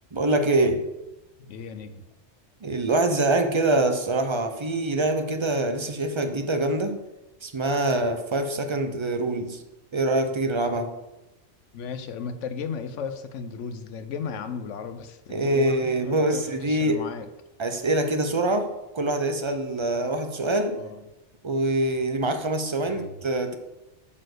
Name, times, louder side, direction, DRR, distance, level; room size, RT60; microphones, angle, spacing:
voice 1, 0.1-0.8 2.6-7.0 7.4-9.6 9.9-10.9 15.3-17.0 17.6-20.8 21.4-23.6, right 2 dB, 30° right, 7 dB, 0.6 m, -24 dB
voice 2, 1.5-2.0 11.7-17.3 20.8-21.0 22.9-23.2, left 6 dB, 90° left, 10 dB, 1.1 m, -35 dB
8.8 x 4.4 x 6.6 m, 0.99 s
omnidirectional pair, 1.2 m